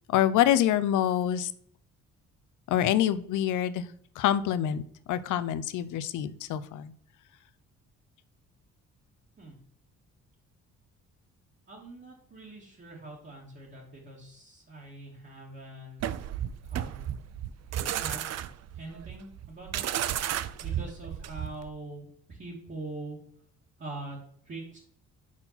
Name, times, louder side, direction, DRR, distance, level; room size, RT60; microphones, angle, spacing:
voice 1, 0.1-1.5 2.7-3.9 4.2-4.8 5.1-6.9, left 11 dB, 85° left, 14 dB, 0.6 m, -26 dB
voice 2, 11.7-16.2 16.6-17.1 17.9-18.3 18.8-19.8 20.6-23.2 23.8-24.2 24.5-24.8, right 2 dB, 40° right, -6 dB, 2.4 m, -43 dB
sound 1, 16.0-21.7, right 11 dB, 60° right, 0.5 m, -33 dB
5.9 x 4.5 x 5.7 m, 0.63 s
cardioid pair, 90°, 30 cm